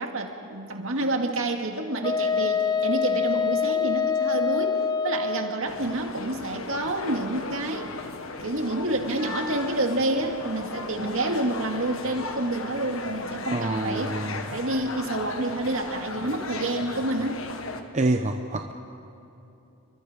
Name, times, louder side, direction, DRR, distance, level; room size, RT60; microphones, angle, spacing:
voice 1, 0.0-7.9 8.4-14.1 14.5-17.4, right 2 dB, 60° right, 3 dB, 2.2 m, -28 dB
Wind instrument woodwind instrument, 2.0-5.6, left 6 dB, 20° left, 0.5 m, -25 dB
sound 1, 5.7-17.8, left 3 dB, 65° left, 1.5 m, -36 dB
voice 2, 13.5-14.4 17.9-18.7, right 2 dB, 30° right, 5 dB, 0.8 m, -26 dB
29.0 x 24.0 x 5.1 m, 2.9 s
head